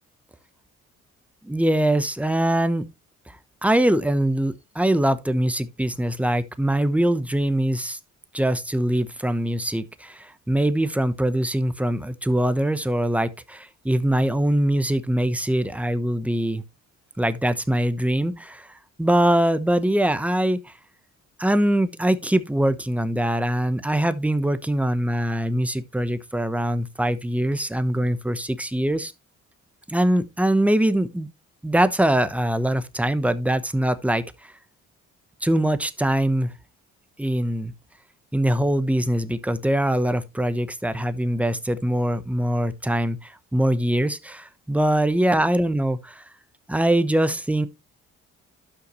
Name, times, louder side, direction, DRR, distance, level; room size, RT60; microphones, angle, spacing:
voice 1, 1.4-2.9 3.3-8.0 8.3-16.6 17.2-20.7 21.4-29.1 29.9-31.3 31.6-34.5 35.4-36.5 37.2-37.7 38.3-46.2 46.7-47.7, right 1 dB, 5° right, 0.9 m, -23 dB
12.0 x 5.9 x 3.1 m
cardioid pair, 90°, 30 cm